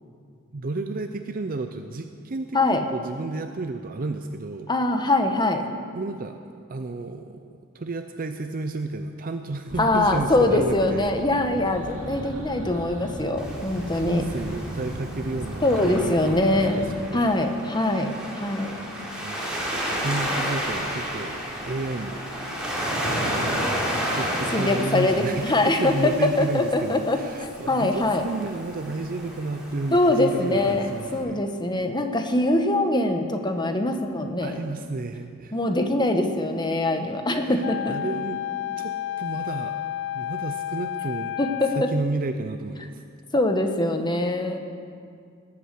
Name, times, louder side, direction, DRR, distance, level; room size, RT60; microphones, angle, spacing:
voice 1, 0.5-4.7 5.9-6.4 6.7-7.4 7.7-11.1 13.4-17.3 18.7-22.2 23.1-31.4 34.4-35.6 37.4-38.4 38.8-39.8 40.1-41.4 41.7-43.0, right 3 dB, 40° right, 7 dB, 0.6 m, -32 dB
voice 2, 4.7-5.6 9.8-14.3 15.6-16.8 17.1-18.1 18.4-18.7 24.5-26.1 26.4-27.2 27.7-28.2 29.9-30.8 31.1-34.6 35.5-37.9 41.4-41.9 43.3-44.6, left 2 dB, 20° left, 6 dB, 1.1 m, -23 dB
sound 1, 9.7-17.0, equal, 85° right, 2.3 m, -36 dB
Waves surf, 13.4-31.2, equal, 5° right, 3.3 m, -32 dB
Wind instrument woodwind instrument, 37.6-42.0, left 11 dB, 60° left, 0.3 m, -31 dB
19.0 x 8.5 x 7.6 m, 2.3 s
head